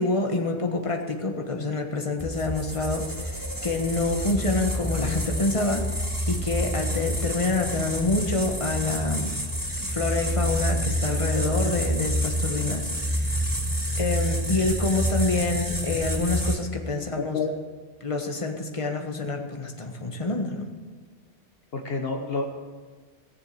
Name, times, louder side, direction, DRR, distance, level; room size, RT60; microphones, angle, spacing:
voice 1, 0.0-9.3 9.9-13.5 14.0-17.4 18.0-20.7, left 3 dB, 30° left, 3 dB, 1.6 m, -27 dB
sound 1, 2.2-16.5, equal, 20° right, 2.3 m, -28 dB
voice 2, 17.1-17.5 21.7-22.5, left 4 dB, 65° left, 4 dB, 1.3 m, -28 dB
18.0 x 7.4 x 7.7 m, 1.5 s
omnidirectional pair, 1.1 m